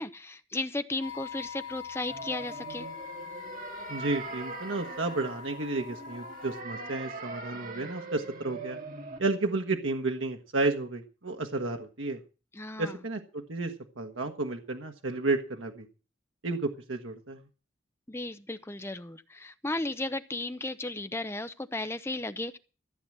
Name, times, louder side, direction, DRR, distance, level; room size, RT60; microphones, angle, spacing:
voice 1, 0.0-2.9 12.5-13.0 18.1-22.6, left 2 dB, 15° left, 0.6 m, -35 dB
sound 1, 1.0-6.6, left 8 dB, 80° left, 1.4 m, -43 dB
sound 2, 2.1-9.2, right 3 dB, 45° right, 2.1 m, -42 dB
voice 2, 3.9-8.8 9.2-12.2 12.8-15.8 16.4-17.4, right 2 dB, 90° right, 1.3 m, -32 dB
14.5 x 7.8 x 7.3 m
head